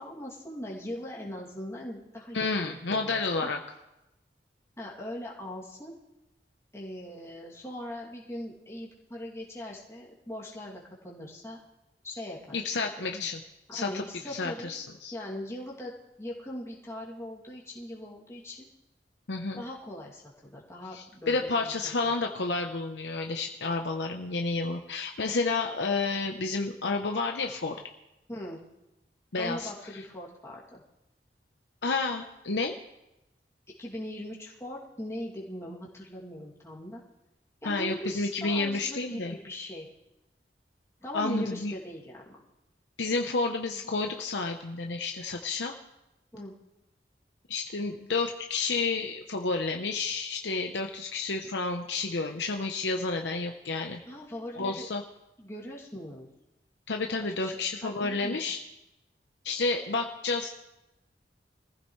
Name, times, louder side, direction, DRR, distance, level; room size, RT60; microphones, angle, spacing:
voice 1, 0.0-3.5 4.8-5.9 6.7-11.6 12.0-12.6 13.0-13.1 13.7-14.8 15.1-15.9 16.2-18.7 19.6-21.7 22.0-22.1 28.3-28.6 29.4-30.8 33.8-37.0 37.6-39.9 41.0-42.4 46.3-46.5 54.1-54.9 55.4-56.3 57.4-58.6, left 1 dB, 15° left, -5 dB, 2.7 m, -40 dB
voice 2, 2.3-3.6 12.5-13.4 13.7-15.1 19.3-19.6 20.9-27.8 29.3-29.7 31.8-32.8 37.6-39.3 41.1-41.7 43.0-45.7 47.5-54.0 54.6-55.0 56.9-58.6 59.4-60.5, left 3 dB, 85° left, 3 dB, 0.9 m, -30 dB
22.5 x 15.0 x 3.2 m, 0.91 s
head